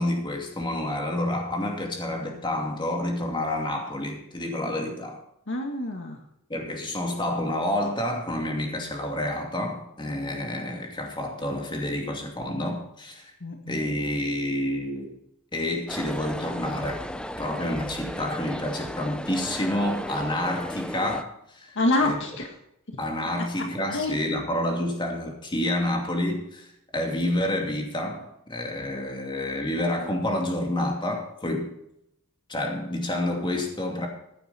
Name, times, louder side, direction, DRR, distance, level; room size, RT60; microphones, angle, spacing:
voice 1, 0.0-5.2 6.5-13.3 13.7-15.1 15.5-17.0 17.4-22.2 23.0-31.7 32.5-34.1, left 1 dB, 20° left, 2 dB, 2.7 m, -29 dB
voice 2, 5.5-6.2 13.4-13.8 21.7-22.5 23.9-24.2, left 2 dB, 60° left, 3 dB, 1.7 m, -26 dB
sound 1, 15.9-21.2, left 1 dB, 5° left, 0.6 m, -35 dB
15.5 x 9.7 x 4.3 m, 0.77 s
head